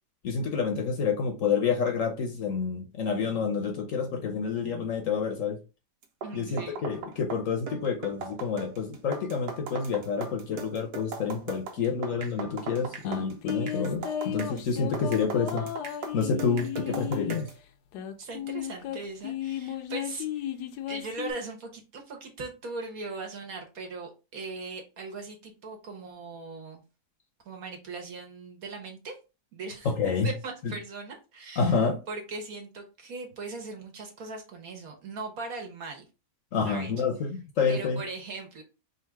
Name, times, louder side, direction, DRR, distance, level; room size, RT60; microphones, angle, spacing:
voice 1, 0.2-5.6 6.3-15.7 16.1-17.5 29.8-30.3 31.6-32.0 36.5-37.3 37.6-38.0, left 5 dB, 60° left, 1.0 m, -28 dB
sound 1, 6.0-17.6, right 5 dB, 80° right, 1.4 m, -39 dB
voice 2, 6.2-6.8 16.6-17.0 18.2-20.5 20.9-26.8 27.4-29.2 29.5-29.9 30.2-31.8 32.1-36.1 36.6-36.9 37.7-38.6, right 3 dB, 60° right, 1.5 m, -39 dB
sound 2, 13.0-17.4 17.9-21.3, left 10 dB, 80° left, 1.2 m, -35 dB
3.7 x 2.5 x 4.5 m
omnidirectional pair, 1.8 m